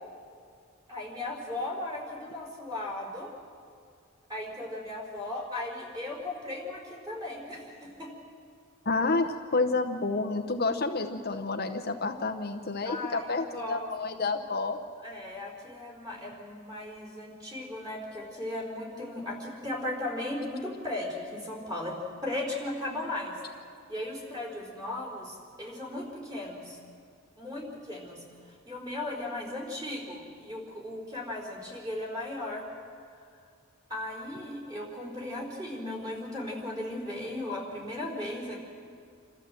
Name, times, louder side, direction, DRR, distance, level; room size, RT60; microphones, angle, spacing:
voice 1, 0.9-3.3 4.3-8.1 12.8-13.9 15.0-23.3 23.9-26.8 27.4-28.2 28.5-32.7 33.9-38.6, left 1 dB, 20° right, -1 dB, 4.3 m, -36 dB
voice 2, 8.9-14.8, left 3 dB, 45° left, 6 dB, 0.8 m, -29 dB
28.0 x 14.0 x 7.7 m, 2.3 s
head